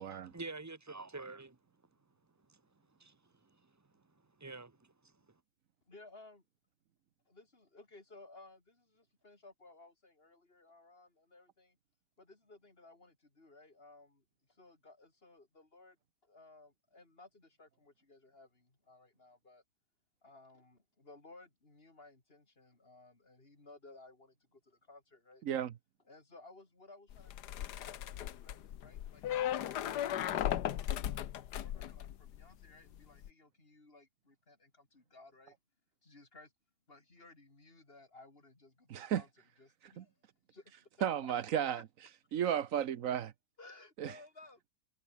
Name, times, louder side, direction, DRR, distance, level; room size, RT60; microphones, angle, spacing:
voice 1, 0.0-1.6 3.0-3.2 4.4-4.8, right 3 dB, 15° right, 0.7 m, -46 dB
voice 2, 5.9-6.4 7.3-11.8 12.2-16.0 16.2-19.6 20.2-25.5 26.1-29.2 30.7-31.3 31.6-35.6 36.0-36.5 36.9-39.3 39.6-40.2 40.5-41.3 41.7-41.8 42.4-42.5 43.6-44.7, left 2 dB, 35° left, 3.8 m, -58 dB
sound 1, 27.1-32.6 32.9-33.3, left 11 dB, 75° left, 1.5 m, -37 dB
voice 3, 38.9-39.2 40.0-40.1 41.0-41.8 42.3-43.3 44.0-44.1, right 9 dB, 60° right, 1.1 m, -33 dB
omnidirectional pair, 1.8 m